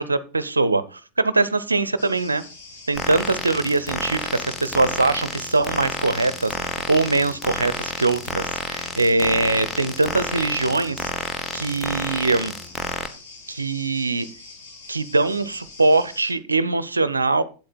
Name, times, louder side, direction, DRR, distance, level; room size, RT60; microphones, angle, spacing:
voice 1, 0.0-2.4 2.9-11.1 11.5-12.5 13.5-14.3 14.9-17.4, right 3 dB, 80° right, 15 dB, 0.6 m, -22 dB
sound 1, 2.0-16.3, left 3 dB, 60° left, 4.7 m, -44 dB
sound 2, 3.0-13.1, left 3 dB, 15° left, 1.3 m, -30 dB
8.6 x 7.9 x 4.2 m, 0.35 s
figure-of-eight pair, 90°, 0 cm